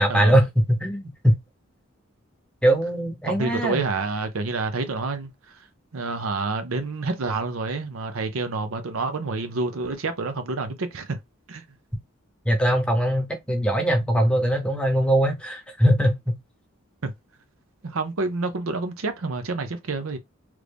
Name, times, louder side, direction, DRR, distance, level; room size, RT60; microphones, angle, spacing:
voice 1, 0.0-1.4 2.6-3.8 12.4-16.4, equal, 5° left, 0.8 m, -21 dB
voice 2, 3.3-5.3 5.9-11.2 11.5-11.6 17.0-17.1 17.8-20.2, right 3 dB, 80° right, 0.7 m, -28 dB
3.1 x 2.5 x 3.4 m
head